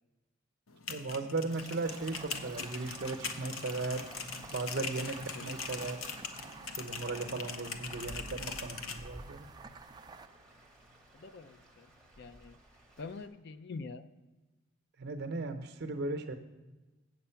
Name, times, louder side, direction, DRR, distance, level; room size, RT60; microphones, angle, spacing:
sound 1, 0.7-9.0, left 5 dB, 80° left, 0.8 m, -42 dB
voice 1, 0.9-4.0 4.5-6.0 6.8-9.5 15.0-16.3, right 3 dB, 50° right, 6 dB, 0.8 m, -37 dB
Stream, 1.5-13.3, right 1 dB, 5° left, 1.2 m, -53 dB
sound 2, 1.8-11.2, right 4 dB, 20° right, 0.3 m, -52 dB
voice 2, 11.1-11.9 12.2-12.6 13.0-14.1, left 4 dB, 55° left, 12 dB, 0.4 m, -45 dB
8.1 x 7.6 x 5.6 m, 1.1 s
head